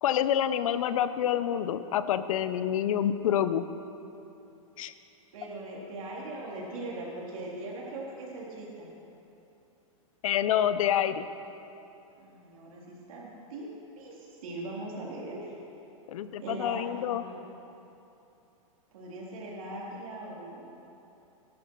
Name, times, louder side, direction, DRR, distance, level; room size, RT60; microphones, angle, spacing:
voice 1, 0.0-3.6 4.8-4.9 10.2-11.3 16.1-17.2, left 10 dB, 70° left, 12 dB, 0.7 m, -27 dB
voice 2, 5.3-8.9 12.2-13.7 14.0-15.5 16.4-17.4 18.9-20.8, right 2 dB, 70° right, -4 dB, 3.4 m, -40 dB
18.0 x 11.5 x 4.6 m, 2.9 s
supercardioid pair, 150°, 18 cm